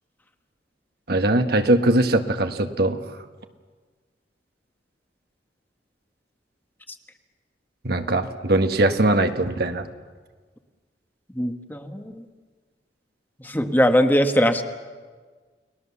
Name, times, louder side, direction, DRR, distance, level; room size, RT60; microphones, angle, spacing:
voice 1, 1.1-3.0 7.8-9.8, right 1 dB, 65° right, 7 dB, 1.5 m, -21 dB
voice 2, 11.3-12.2 13.4-14.6, equal, 10° left, 7 dB, 1.2 m, -21 dB
30.0 x 20.0 x 7.2 m, 1.5 s
head